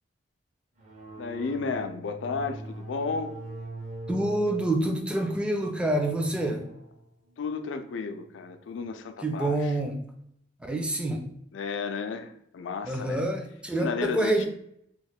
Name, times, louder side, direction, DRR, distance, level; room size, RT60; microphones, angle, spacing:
sound 1, 0.8-8.9, right 2 dB, 40° right, 0.7 m, -43 dB
voice 1, 1.2-3.3 7.4-9.7 11.5-13.2 13.8-14.5, left 4 dB, 90° left, 8 dB, 0.4 m, -33 dB
voice 2, 4.1-6.7 9.2-10.0 10.6-11.3 12.9-14.5, right 1 dB, 5° right, 3 dB, 0.4 m, -27 dB
2.9 x 2.1 x 4.0 m, 0.72 s
head